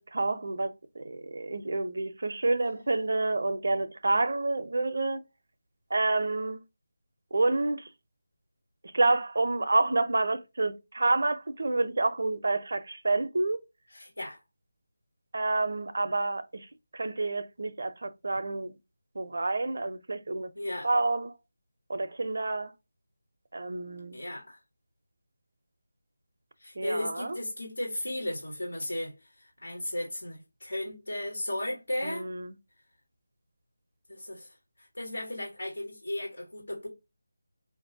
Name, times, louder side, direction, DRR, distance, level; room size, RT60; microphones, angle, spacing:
voice 1, 0.0-5.2 5.9-6.6 7.3-7.9 8.9-13.6 15.3-16.4 16.9-18.7 19.2-20.5 20.8-21.3 21.9-22.7 23.5-24.2 26.8-27.4 32.0-32.5, right 2 dB, 60° right, 0.6 m, -28 dB
voice 2, 13.9-14.4 20.5-20.9 24.1-24.6 26.6-32.3 34.1-36.9, left 1 dB, 85° left, 1.5 m, -35 dB
4.6 x 2.6 x 2.6 m
figure-of-eight pair, 165°, 0 cm